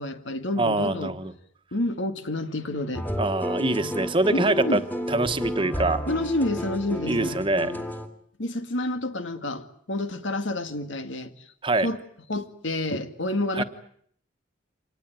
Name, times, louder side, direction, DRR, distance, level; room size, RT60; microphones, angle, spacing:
voice 1, 0.0-1.1 1.7-3.1 4.3-4.8 6.1-7.4 8.4-11.3 11.8-12.0 12.3-13.6, left 1 dB, 85° left, 9 dB, 2.0 m, -29 dB
voice 2, 0.6-1.3 3.2-4.8 5.1-6.0 7.0-7.7 11.6-11.9 13.5-13.6, right 2 dB, 25° right, 9 dB, 1.3 m, -24 dB
sound 1, 2.9-8.1, equal, 10° left, 2.2 m, -31 dB
26.0 x 19.5 x 9.3 m, 0.64 s
head